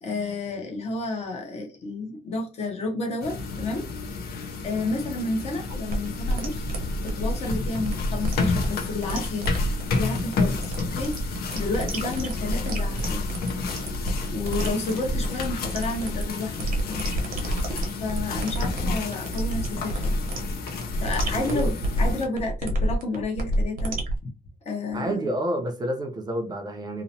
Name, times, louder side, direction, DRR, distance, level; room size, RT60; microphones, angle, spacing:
voice 1, 0.0-4.2 4.6-6.7 7.0-9.5 9.9-13.2 14.3-17.1 18.0-20.2 21.0-21.7 22.0-24.0 24.7-25.2, left 3 dB, 45° left, 0.7 m, -31 dB
sound 1, 3.2-22.3, left 4 dB, 85° left, 0.5 m, -31 dB
sound 2, 5.7-24.2, equal, 65° right, 0.7 m, -29 dB
voice 2, 21.3-21.8 24.9-27.0, right 1 dB, 25° right, 0.4 m, -29 dB
2.8 x 2.0 x 2.6 m
wide cardioid pair, 175°, 16 cm